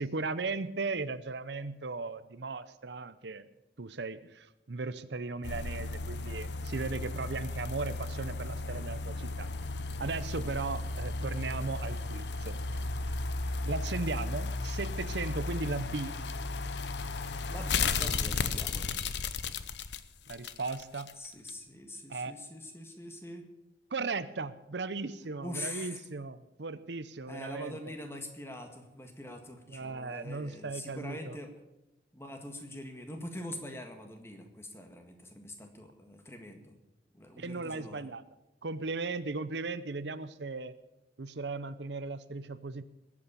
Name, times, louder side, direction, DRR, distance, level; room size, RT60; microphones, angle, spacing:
voice 1, 0.0-3.5 3.8-9.5 10.0-12.6 13.6-16.1 20.3-21.1 22.1-22.3 23.9-27.9 29.7-31.4 37.4-38.2 38.6-40.8 41.2-42.8, right 3 dB, 75° right, 14 dB, 0.7 m, -37 dB
sound 1, 5.4-21.1 21.5-21.6, left 3 dB, 75° left, 0.8 m, -35 dB
voice 2, 17.5-18.9 21.2-23.5 25.4-26.0 27.3-31.5 32.1-36.8 37.1-38.1, left 1 dB, 15° left, 5 dB, 1.8 m, -44 dB
21.0 x 8.6 x 6.9 m, 0.91 s
head